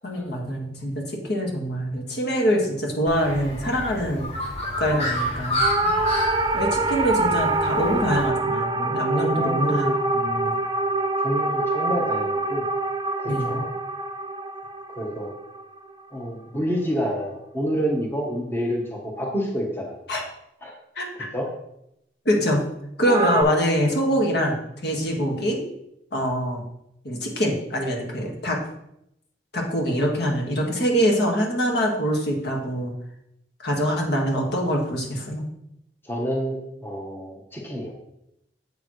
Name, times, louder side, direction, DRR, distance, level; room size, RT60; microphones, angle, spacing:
voice 1, 0.0-4.3 4.8-6.0 6.5-10.6 13.3-13.6 20.1-20.2 21.0-21.3 22.3-22.6 23.0-25.6 26.1-26.6 27.0-28.6 29.5-32.9 33.6-35.4, equal, 65° left, 0 dB, 1.7 m, -24 dB
Bird, 3.1-8.3, equal, 35° left, 1.9 m, -29 dB
sound 1, 5.6-16.1 23.0-23.4, right 2 dB, 25° right, 0.4 m, -25 dB
voice 2, 9.1-10.0 11.2-12.7 13.2-13.7 15.0-15.3 16.1-20.0 20.6-20.7 21.3-21.5 36.0-37.9, equal, 15° left, 0 dB, 1.1 m, -28 dB
7.9 x 6.9 x 3.1 m, 0.79 s
head